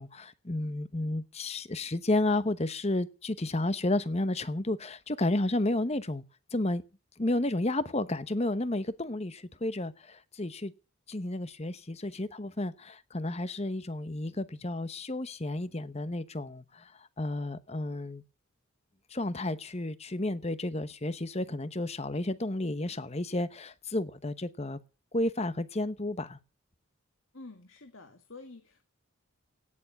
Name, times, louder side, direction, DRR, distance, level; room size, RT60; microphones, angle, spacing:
voice 1, 0.0-6.2 6.5-6.8 7.2-10.7 11.1-16.9 17.2-18.2 19.1-24.8 25.1-26.4, left 2 dB, 30° left, 0.9 m, -32 dB
voice 2, 27.3-28.9, left 3 dB, 65° left, 1.8 m, -49 dB
17.0 x 7.1 x 8.6 m
head